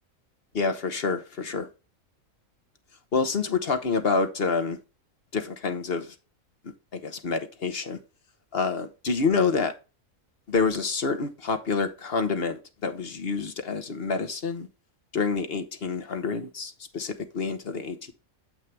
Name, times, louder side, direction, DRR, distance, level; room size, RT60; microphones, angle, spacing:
voice 1, 0.5-1.7 3.1-4.8 5.3-6.1 6.9-8.0 8.5-9.7 10.5-14.7 15.1-18.1, left 4 dB, 50° left, 1.2 m, -27 dB
7.4 x 6.1 x 3.2 m
omnidirectional pair, 1.4 m